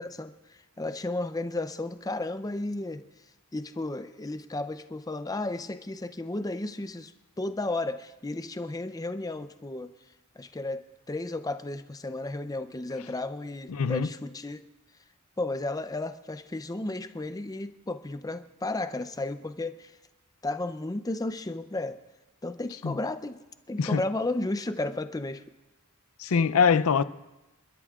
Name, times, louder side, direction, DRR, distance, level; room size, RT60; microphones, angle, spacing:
voice 1, 0.0-3.0 3.5-9.9 10.4-10.8 11.1-14.6 15.4-19.9 20.4-22.0 22.4-23.4 23.7-25.4, left 2 dB, 15° left, 0.5 m, -33 dB
voice 2, 13.7-14.1 22.8-23.0 23.8-24.0 26.2-27.0, left 6 dB, 70° left, 0.5 m, -23 dB
29.5 x 12.5 x 2.4 m
head